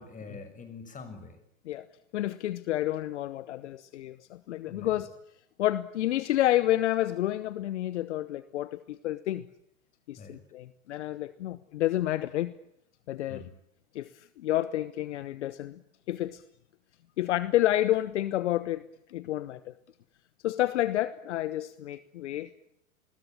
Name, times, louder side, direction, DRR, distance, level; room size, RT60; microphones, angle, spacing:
voice 1, 0.0-1.4 4.6-4.9 10.1-10.4 13.3-13.5, left 4 dB, 20° left, 6.3 m, -45 dB
voice 2, 2.1-5.1 5.6-9.5 10.1-12.5 13.1-13.4 13.9-15.8 16.1-16.4 17.2-19.7 20.4-22.5, left 14 dB, 55° left, 1.2 m, -29 dB
29.0 x 21.5 x 9.0 m
figure-of-eight pair, 95°, 41 cm